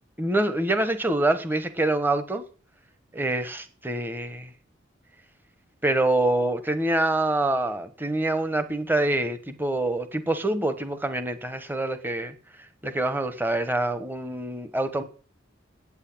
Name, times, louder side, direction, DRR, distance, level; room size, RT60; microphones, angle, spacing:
voice 1, 0.2-2.4 3.1-4.5 5.8-12.3 12.8-15.0, right 2 dB, 10° right, 11 dB, 1.1 m, -25 dB
8.9 x 8.3 x 8.7 m, 0.39 s
head